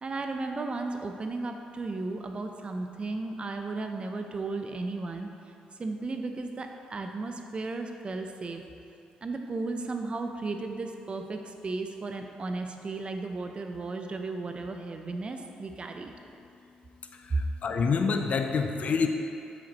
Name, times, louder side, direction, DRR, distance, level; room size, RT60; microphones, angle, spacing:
voice 1, 0.0-5.3 5.8-8.6 9.2-16.1 17.3-17.4, right 3 dB, 40° right, 5 dB, 0.7 m, -34 dB
voice 2, 17.0-19.1, left 5 dB, 55° left, 5 dB, 0.6 m, -27 dB
8.5 x 6.1 x 3.0 m, 2.7 s
supercardioid pair, 65°, 3 cm